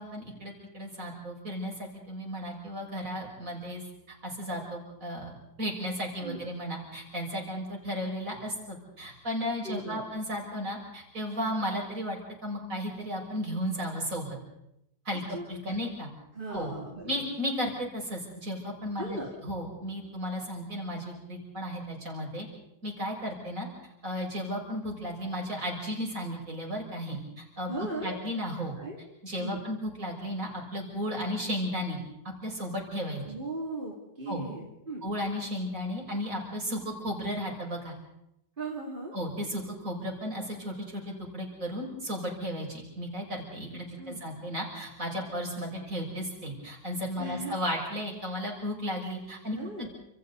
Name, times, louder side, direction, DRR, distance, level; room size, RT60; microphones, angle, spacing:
voice 1, 0.0-3.8 4.1-14.4 15.0-16.1 16.5-16.7 17.1-22.5 22.8-23.7 24.0-27.7 28.0-28.7 29.2-32.0 32.4-33.2 34.3-34.4 35.0-37.9 39.1-49.9, equal, 40° right, 0 dB, 6.6 m, -34 dB
voice 2, 9.6-10.1 15.3-15.8 16.3-17.2 19.0-19.3 27.7-28.2 28.8-29.0 29.4-29.6 33.2-35.0 38.6-39.1 44.0-44.2 47.2-47.6 49.5-49.9, right 2 dB, 25° right, -3 dB, 3.2 m, -38 dB
30.0 x 27.5 x 4.1 m, 0.84 s
omnidirectional pair, 2.1 m